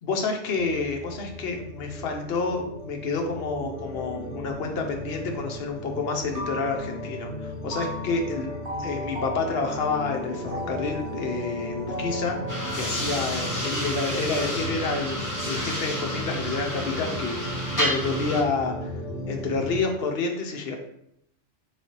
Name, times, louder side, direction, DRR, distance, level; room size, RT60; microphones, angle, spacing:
voice 1, 0.0-8.5 8.8-12.4 12.7-15.2 15.5-18.9 19.3-20.7, left 4 dB, 60° left, 3 dB, 0.7 m, -29 dB
sound 1, 0.5-19.8, equal, 65° right, 1.1 m, -35 dB
sound 2, 6.3-7.3 7.7-13.8, equal, 45° right, 1.2 m, -37 dB
sound 3, 12.5-18.4, equal, 15° left, 0.7 m, -31 dB
4.1 x 3.2 x 2.8 m, 0.74 s
omnidirectional pair, 1.4 m